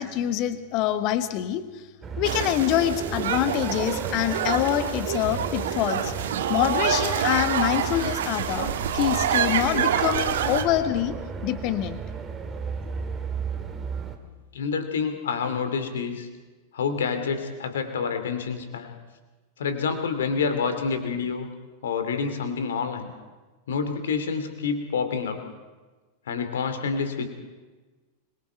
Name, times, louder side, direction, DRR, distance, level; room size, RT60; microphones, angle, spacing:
voice 1, 0.0-1.8 2.2-6.1 6.5-11.1 11.4-12.0, left 12 dB, 40° left, 11 dB, 1.4 m, -25 dB
sound 1, 2.0-14.2, right 5 dB, 20° right, 2.1 m, -34 dB
sound 2, 2.2-10.6, right 8 dB, 60° right, 1.4 m, -27 dB
voice 2, 14.5-16.3 16.7-18.9 19.6-21.5 21.8-23.1 23.7-25.4 26.3-27.3, left 5 dB, 65° left, 8 dB, 2.6 m, -28 dB
25.5 x 22.5 x 4.6 m, 1.3 s
figure-of-eight pair, 90°, 0 cm